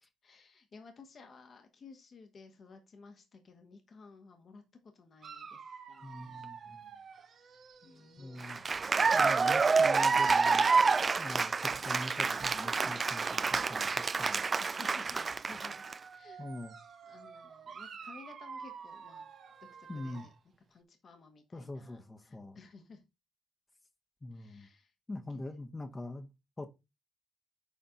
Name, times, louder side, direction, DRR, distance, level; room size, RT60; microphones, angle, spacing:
voice 1, 0.2-4.6 5.0-6.5 7.8-8.9 14.6-15.8 16.1-16.5 17.1-19.2 19.8-20.3 20.7-23.0 24.3-24.9 25.5-25.6, left 4 dB, 50° left, 1.9 m, -55 dB
Dog, 5.2-8.6 9.4-11.4 12.2-14.8 15.5-20.4, right 6 dB, 55° right, 1.2 m, -49 dB
voice 2, 6.0-6.9 8.2-8.6 9.1-10.7 11.2-14.5 16.4-16.8 19.9-20.3 21.5-22.6 24.2-24.7 25.1-26.3 26.6-26.7, left 2 dB, 25° left, 1.4 m, -43 dB
Cheering / Applause, 8.4-15.9, right 4 dB, 40° right, 0.4 m, -28 dB
10.0 x 4.3 x 4.0 m
hypercardioid pair, 45°, 0 cm